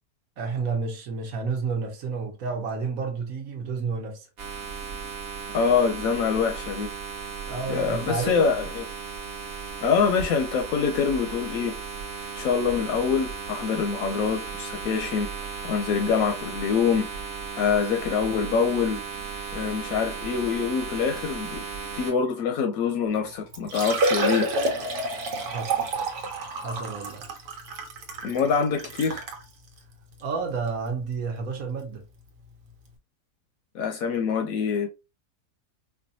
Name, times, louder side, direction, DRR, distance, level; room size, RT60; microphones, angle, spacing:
voice 1, 0.4-4.3 7.5-8.4 25.5-25.7 26.6-27.2 30.2-32.0, right 4 dB, 60° right, 1.2 m, -30 dB
sound 1, 4.4-22.1, right 5 dB, 45° right, 0.9 m, -36 dB
voice 2, 5.5-6.9 7.7-8.8 9.8-11.8 12.4-15.3 15.6-17.1 17.6-19.0 19.5-21.6 21.9-24.5 28.2-29.2 33.7-34.9, left 6 dB, 70° left, 0.9 m, -25 dB
Liquid, 23.1-23.2 23.5-29.4 30.1-30.2 30.7-30.8 32.4-32.5 32.7-32.8, right 2 dB, 85° right, 1.4 m, -29 dB
4.6 x 2.2 x 2.6 m
omnidirectional pair, 1.7 m